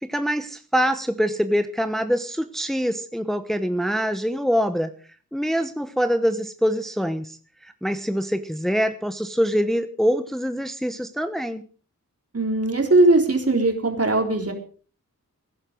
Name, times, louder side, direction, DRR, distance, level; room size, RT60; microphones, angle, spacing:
voice 1, 0.0-4.9 5.3-7.4 7.6-11.6, equal, ahead, 9 dB, 1.0 m, -24 dB
voice 2, 12.3-14.5, right 2 dB, 45° right, 3 dB, 3.8 m, -19 dB
18.0 x 11.0 x 5.3 m, 0.40 s
wide cardioid pair, 70°, 33 cm